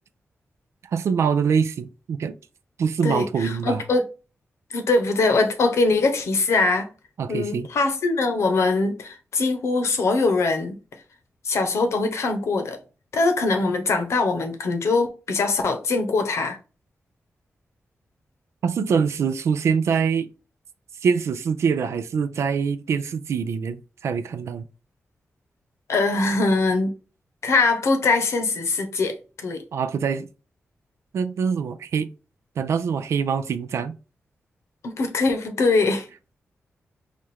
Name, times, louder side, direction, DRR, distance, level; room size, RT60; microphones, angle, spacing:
voice 1, 0.9-2.3 2.8-3.8 7.2-7.7 18.6-20.3 21.0-24.6 29.7-30.3 31.1-32.1 32.6-33.9, right 6 dB, 80° right, 0.4 m, -24 dB
voice 2, 3.0-4.0 4.7-6.9 7.3-10.8 11.4-12.8 13.1-16.6 25.9-26.9 27.4-29.1 29.4-29.6 34.8-36.1, left 3 dB, 80° left, 0.9 m, -22 dB
4.2 x 2.4 x 3.3 m
wide cardioid pair, 150°, 5 cm